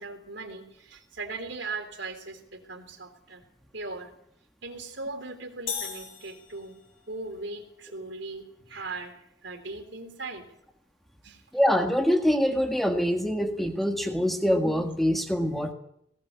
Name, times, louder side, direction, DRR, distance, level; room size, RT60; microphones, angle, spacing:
voice 1, 0.0-3.4 3.7-4.1 4.6-6.7 7.1-10.5 11.2-11.4, right 3 dB, 70° right, 7 dB, 3.5 m, -39 dB
sound 1, 5.7-7.1, left 8 dB, 90° left, 6.4 m, -37 dB
voice 2, 11.5-15.7, equal, ahead, 4 dB, 1.6 m, -24 dB
20.0 x 17.5 x 8.5 m, 0.72 s
head